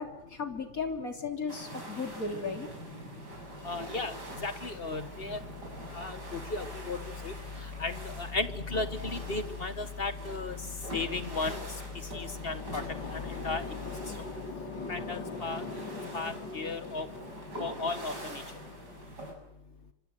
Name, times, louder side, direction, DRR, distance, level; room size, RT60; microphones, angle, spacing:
voice 1, 0.0-2.7, left 4 dB, 50° left, 5 dB, 3.8 m, -35 dB
sound 1, 1.5-19.3, right 1 dB, 65° right, 7.7 m, -44 dB
voice 2, 3.6-5.4 5.9-7.3 7.8-10.6 10.9-11.6 12.1-12.8 13.1-13.6 14.9-15.6 16.1-17.1 17.6-18.4, left 3 dB, 35° left, 11 dB, 1.5 m, -35 dB
sound 2, 12.0-19.1, left 4 dB, 85° left, 2.7 m, -42 dB
26.0 x 24.5 x 7.8 m, 0.81 s
omnidirectional pair, 1.9 m